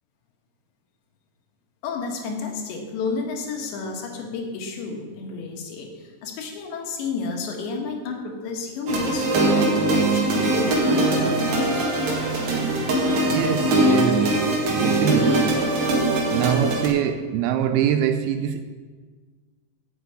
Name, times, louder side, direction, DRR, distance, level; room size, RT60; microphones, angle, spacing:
voice 1, 1.8-11.9, left 4 dB, 85° left, 3.7 m, -31 dB
sound 1, 8.9-16.9, right 2 dB, 50° right, 2.6 m, -21 dB
voice 2, 13.3-14.4 14.7-15.6 16.3-18.6, right 9 dB, 85° right, 2.2 m, -24 dB
8.1 x 8.0 x 8.7 m
omnidirectional pair, 4.9 m